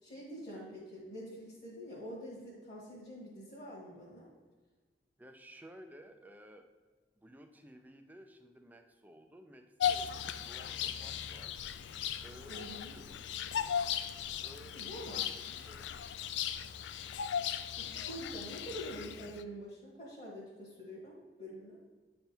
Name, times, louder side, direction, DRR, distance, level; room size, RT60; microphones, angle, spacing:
voice 1, 0.0-4.3 12.5-12.9 14.7-15.2 17.7-21.8, equal, 35° left, -7 dB, 1.5 m, -46 dB
voice 2, 5.2-6.7 7.2-11.6 12.2-13.2 14.4-16.0, equal, 10° right, 5 dB, 0.4 m, -55 dB
Bird vocalization bird call bird song, 9.8-19.4, left 9 dB, 75° left, 0.3 m, -37 dB
9.0 x 3.4 x 4.4 m, 1.4 s
head